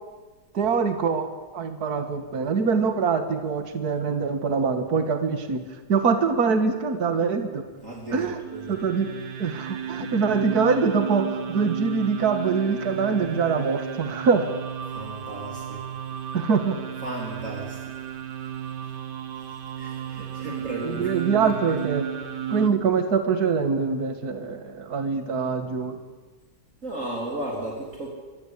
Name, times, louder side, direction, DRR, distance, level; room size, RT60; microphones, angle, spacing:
voice 1, 0.5-1.3 1.5-5.6 5.9-7.7 8.1-8.4 8.7-9.1 9.4-14.5 16.3-16.8 20.8-22.1 22.5-26.0, right 5 dB, 65° right, 8 dB, 2.2 m, -24 dB
voice 2, 7.8-8.8 14.9-15.8 17.0-17.9 19.4-21.5 26.8-28.1, right 1 dB, 50° right, -1 dB, 4.1 m, -35 dB
sound 1, 8.4-22.7, right 9 dB, 85° right, 1.9 m, -34 dB
25.0 x 23.0 x 8.4 m, 1.3 s
omnidirectional pair, 1.8 m